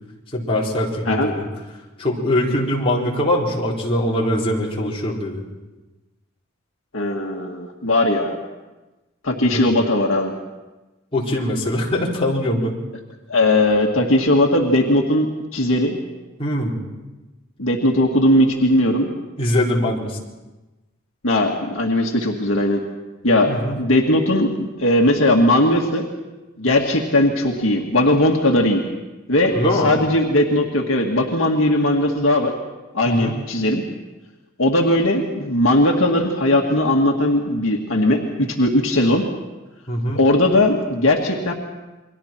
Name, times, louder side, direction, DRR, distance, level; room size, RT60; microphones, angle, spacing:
voice 1, 0.3-1.5 2.0-5.4 9.5-9.6 11.1-12.7 16.4-16.8 19.4-20.2 23.5-23.8 29.5-29.9 33.1-33.4 39.9-40.2, left 1 dB, 30° left, -4 dB, 4.1 m, -22 dB
voice 2, 6.9-8.4 9.2-10.3 13.3-16.0 17.6-19.1 21.2-22.8 23.2-26.1 26.6-28.8 29.3-29.6 29.8-32.5 32.9-33.8 34.6-38.2 38.5-39.2 40.2-41.5, left 1 dB, 70° left, 0 dB, 2.0 m, -18 dB
29.0 x 23.0 x 4.5 m, 1.1 s
head